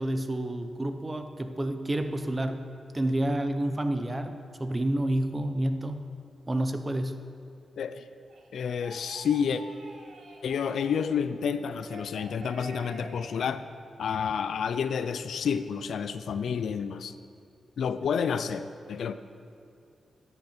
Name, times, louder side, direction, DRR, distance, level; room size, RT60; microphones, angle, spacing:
voice 1, 0.0-2.6 2.9-6.0 6.5-7.1, right 1 dB, 20° right, 8 dB, 0.8 m, -29 dB
sound 1, 8.3-11.2 11.7-13.5, right 2 dB, 70° right, 1.4 m, -47 dB
voice 2, 8.5-9.6 10.4-13.6 14.0-17.1 17.8-19.1, left 7 dB, 80° left, 12 dB, 0.4 m, -29 dB
13.5 x 9.2 x 4.4 m, 2.6 s
cardioid pair, 100°, 0 cm